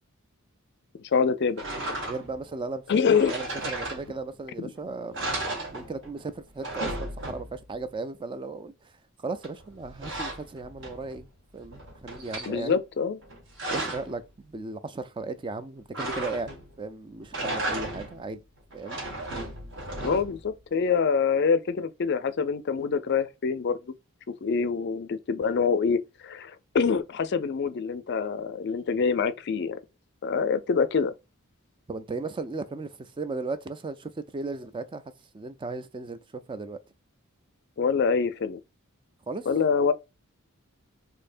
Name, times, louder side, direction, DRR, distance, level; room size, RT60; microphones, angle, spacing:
voice 1, 1.1-1.6 2.9-3.3 4.6-4.7 12.5-13.2 20.0-23.8 24.4-29.8 30.2-31.1 37.8-38.6 39.5-39.9, left 5 dB, 50° left, 0.4 m, -25 dB
sound 1, 1.6-2.4 3.1-4.4 4.8-4.9 5.1-6.2 6.5-7.7 9.4-11.2 11.6-12.5 13.2-14.2 15.9-16.7 17.2-18.2 18.7-20.5, right 1 dB, 55° right, 1.6 m, -35 dB
voice 2, 2.0-8.7 9.2-11.3 11.5-12.8 13.7-18.4 18.7-19.0 31.9-35.0 35.3-36.2 36.5-36.8 39.3-39.5, right 3 dB, 20° right, 0.3 m, -36 dB
4.3 x 2.7 x 2.5 m
head